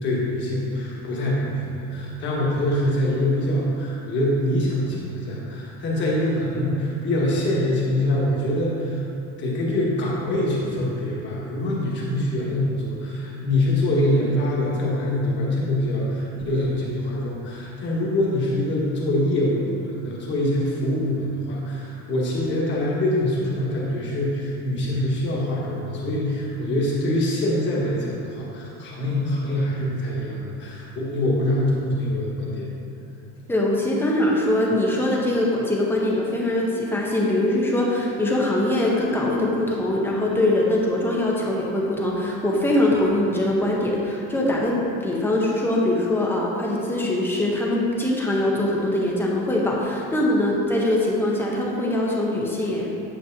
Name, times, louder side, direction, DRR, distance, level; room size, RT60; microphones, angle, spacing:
voice 1, 0.0-9.0 9.4-32.7, left 1 dB, 35° left, -5 dB, 1.5 m, -24 dB
voice 2, 33.5-44.8 45.0-52.9, left 1 dB, 5° left, -3 dB, 0.7 m, -22 dB
8.8 x 6.5 x 2.7 m, 2.7 s
cardioid pair, 165°, 34 cm